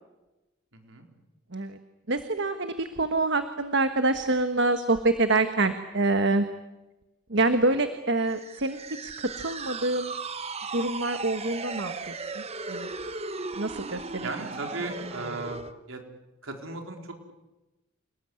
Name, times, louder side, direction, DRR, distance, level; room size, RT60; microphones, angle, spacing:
voice 1, 0.7-1.1 14.2-15.6 15.9-16.0 16.4-17.3, right 3 dB, 90° right, 4 dB, 4.2 m, -36 dB
voice 2, 2.1-6.5 7.3-10.1 10.7-12.9 13.6-14.3, right 2 dB, 60° right, 9 dB, 1.4 m, -26 dB
sound 1, 8.3-15.7, right 4 dB, 30° right, 1.2 m, -37 dB
28.0 x 20.0 x 9.7 m, 1.1 s
head